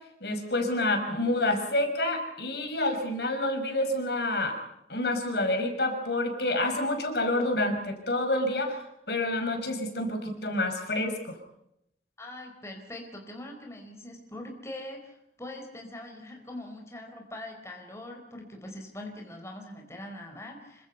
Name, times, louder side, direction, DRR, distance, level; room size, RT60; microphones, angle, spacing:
voice 1, 0.2-4.6 4.9-8.8 9.1-11.4, left 1 dB, 65° left, 5 dB, 5.7 m, -28 dB
voice 2, 12.2-20.9, left 1 dB, 15° left, 2 dB, 4.5 m, -42 dB
27.5 x 25.0 x 5.6 m, 0.78 s
head